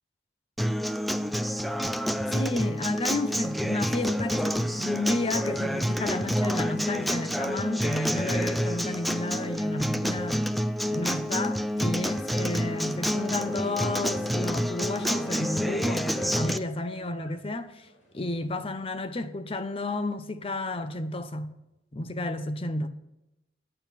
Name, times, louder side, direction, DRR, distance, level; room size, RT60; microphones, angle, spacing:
Acoustic guitar, 0.6-16.6, equal, ahead, 0.3 m, -28 dB
voice 1, 2.3-10.5 10.9-17.9 18.1-21.5 21.9-22.9, left 2 dB, 30° left, 0.7 m, -32 dB
sound 1, 2.9-18.8, left 1 dB, 90° left, 2.9 m, -52 dB
8.9 x 8.9 x 5.9 m
head